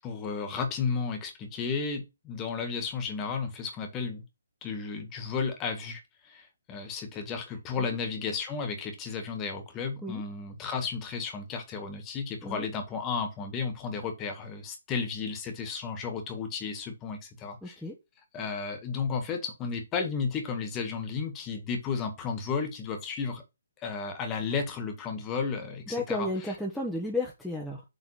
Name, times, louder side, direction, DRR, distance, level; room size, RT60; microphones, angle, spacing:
voice 1, 0.0-4.2 4.6-6.0 6.3-17.8 18.3-23.4 23.8-26.5, left 5 dB, 15° left, 1.9 m, -33 dB
voice 2, 17.6-18.0 25.9-27.8, left 1 dB, ahead, 1.2 m, -33 dB
7.1 x 4.0 x 6.5 m
hypercardioid pair, 160°, 0 cm